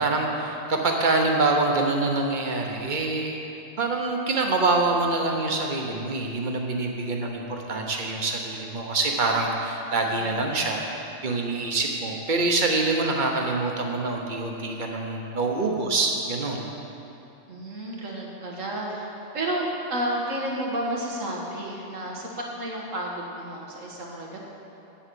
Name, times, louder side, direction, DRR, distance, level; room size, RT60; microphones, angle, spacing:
voice 1, 0.0-3.4 3.8-16.7, right 3 dB, 40° right, 1 dB, 1.1 m, -25 dB
voice 2, 17.5-19.1 19.3-22.3 22.6-24.4, right 1 dB, 90° right, -2 dB, 1.9 m, -31 dB
8.8 x 7.3 x 7.0 m, 2.8 s
omnidirectional pair, 1.3 m